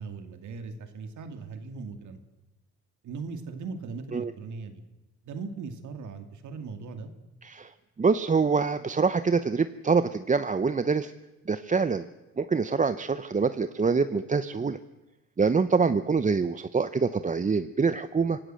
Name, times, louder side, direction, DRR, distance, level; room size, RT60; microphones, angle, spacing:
voice 1, 0.0-2.2 3.0-4.8 5.2-7.1, right 4 dB, 75° right, 8 dB, 2.5 m, -39 dB
voice 2, 7.4-11.1 11.5-12.1 12.4-14.8 15.4-18.4, right 5 dB, 25° right, 12 dB, 0.8 m, -25 dB
26.0 x 17.0 x 7.7 m, 1.1 s
cardioid pair, 90°, 30 cm